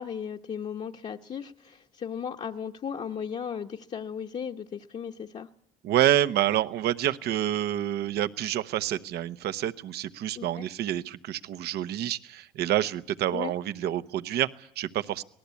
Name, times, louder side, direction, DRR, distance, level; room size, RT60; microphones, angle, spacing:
voice 1, 0.0-5.5 10.3-10.7 13.3-13.5, left 7 dB, 40° left, 0 dB, 1.1 m, -36 dB
voice 2, 5.8-15.2, right 12 dB, 75° right, 13 dB, 1.0 m, -28 dB
25.5 x 19.0 x 8.4 m, 0.73 s
cardioid pair, 110°, 17 cm